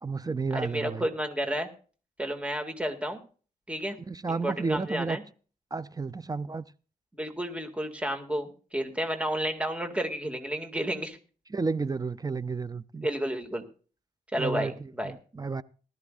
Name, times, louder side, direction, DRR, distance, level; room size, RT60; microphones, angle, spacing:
voice 1, 0.0-1.1 4.1-5.2 5.7-6.6 11.5-13.1 14.4-15.6, right 4 dB, 25° right, 0.5 m, -32 dB
voice 2, 0.5-1.7 2.2-3.2 3.7-4.0 4.3-5.2 7.2-11.2 13.0-13.6 14.3-15.1, equal, 10° right, 2.1 m, -31 dB
19.0 x 13.0 x 2.5 m
wide cardioid pair, 100°, 15 cm